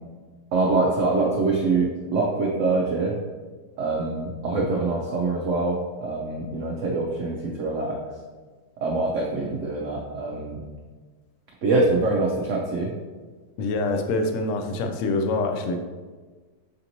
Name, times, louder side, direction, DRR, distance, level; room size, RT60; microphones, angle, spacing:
voice 1, 0.5-3.2 3.8-8.0 8.8-10.6 11.6-12.9, right 3 dB, 80° right, -1 dB, 0.6 m, -24 dB
voice 2, 13.6-15.8, left 2 dB, 90° left, 4 dB, 0.6 m, -25 dB
6.5 x 2.9 x 2.6 m, 1.4 s
omnidirectional pair, 1.9 m